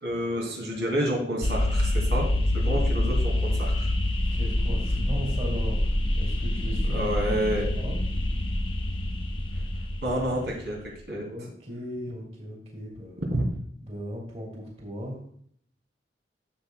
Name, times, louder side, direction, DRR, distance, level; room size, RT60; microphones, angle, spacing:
voice 1, 0.0-3.9 6.9-7.7 10.0-11.3 13.3-13.4, equal, 85° right, -1 dB, 2.5 m, -29 dB
sound 1, 1.4-10.7, left 1 dB, 30° left, 0.8 m, -26 dB
voice 2, 4.3-7.0 7.2-7.9 11.2-13.3 13.8-15.2, equal, 35° right, -2 dB, 2.7 m, -38 dB
11.5 x 7.2 x 2.3 m, 0.63 s
head